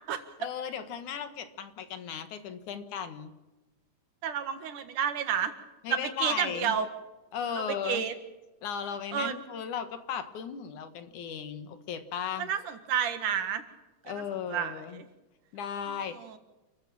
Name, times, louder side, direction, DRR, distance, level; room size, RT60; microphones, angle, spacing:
voice 1, 0.4-3.3 5.8-6.8 7.3-8.1 8.6-12.5 14.1-15.0 15.5-16.4, left 8 dB, 75° left, 10 dB, 3.0 m, -36 dB
voice 2, 4.2-5.5 5.9-6.9 7.5-8.1 9.1-9.4 12.4-13.6 14.1-14.2 14.5-15.1 15.9-16.4, right 8 dB, 85° right, 9 dB, 3.2 m, -31 dB
29.0 x 15.0 x 7.1 m, 1.1 s
omnidirectional pair, 3.5 m